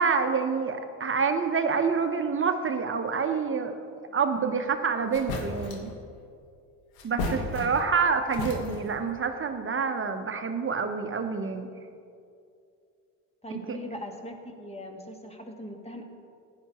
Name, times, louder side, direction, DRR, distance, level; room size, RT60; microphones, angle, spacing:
voice 1, 0.0-3.8 4.1-5.9 7.0-11.7 13.5-13.8, right 5 dB, 30° right, 6 dB, 1.0 m, -27 dB
sound 1, 4.7-4.8 5.1-5.9 6.9-8.0 8.3-9.0, left 3 dB, 80° left, 1.5 m, -34 dB
voice 2, 7.2-7.6 13.4-16.0, equal, 15° left, 3 dB, 1.5 m, -40 dB
15.5 x 10.5 x 3.0 m, 2.4 s
hypercardioid pair, 70°, 43 cm